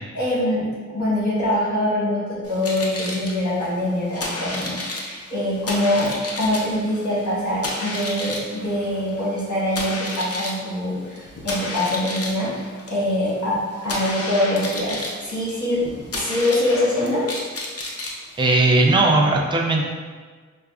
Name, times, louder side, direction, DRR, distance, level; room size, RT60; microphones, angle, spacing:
voice 1, 0.1-15.8 16.1-17.2, left 1 dB, 70° left, -8 dB, 1.4 m, -24 dB
sound 1, 2.4-18.9, left 2 dB, 50° left, 0.6 m, -32 dB
voice 2, 18.4-19.8, right 2 dB, 15° right, -1 dB, 0.4 m, -17 dB
4.7 x 2.2 x 2.3 m, 1.5 s
wide cardioid pair, 60°, 30 cm